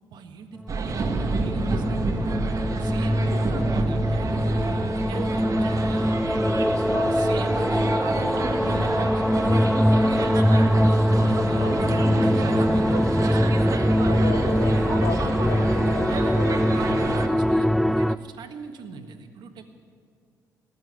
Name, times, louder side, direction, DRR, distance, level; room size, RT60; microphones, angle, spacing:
voice 1, 0.1-2.4 2.8-6.4 7.1-10.9 11.2-13.4 13.7-14.0 16.1-16.4 16.8-19.6, right 6 dB, 70° right, 6 dB, 1.5 m, -40 dB
sound 1, 0.6-18.2, equal, ahead, 0.3 m, -22 dB
sound 2, 0.7-17.3, right 3 dB, 45° right, 1.6 m, -30 dB
voice 2, 3.1-3.7 6.9-7.2 11.5-11.8 13.8-16.6, left 5 dB, 75° left, 6 dB, 1.8 m, -34 dB
20.5 x 7.2 x 9.8 m, 2.2 s
cardioid pair, 75°, 8 cm